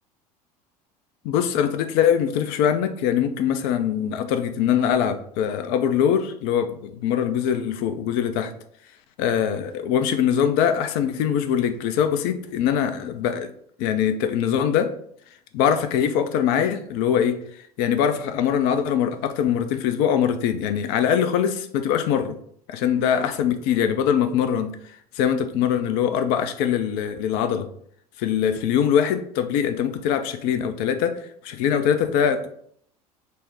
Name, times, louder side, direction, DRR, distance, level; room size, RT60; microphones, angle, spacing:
voice 1, 1.2-8.5 9.2-13.5 13.8-14.9 15.5-17.4 17.8-22.4 22.7-24.8 25.1-27.7 28.2-32.5, left 8 dB, 55° left, 8 dB, 0.4 m, -22 dB
4.1 x 2.0 x 3.6 m, 0.63 s
figure-of-eight pair, 70°, 20 cm